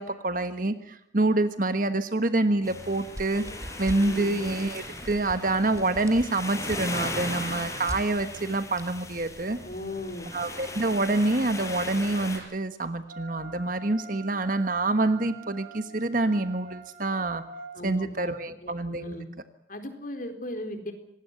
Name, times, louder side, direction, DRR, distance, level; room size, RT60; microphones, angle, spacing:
voice 1, 0.0-3.4 3.8-9.6 10.3-17.4 17.8-19.2, right 2 dB, 45° right, 10 dB, 1.3 m, -27 dB
sound 1, 2.6-12.4, left 2 dB, 15° left, 5.1 m, -37 dB
sound 2, 3.1-4.2 4.4-4.7 5.0-8.0 8.8-8.9, equal, 15° right, 2.3 m, -40 dB
voice 2, 4.0-4.3 9.6-10.3 17.7-18.3 18.6-19.3 19.7-20.9, left 1 dB, 45° left, 7 dB, 4.2 m, -37 dB
Wind instrument woodwind instrument, 13.1-17.7, right 4 dB, 90° right, 7.0 m, -46 dB
26.0 x 19.5 x 8.0 m, 0.73 s
head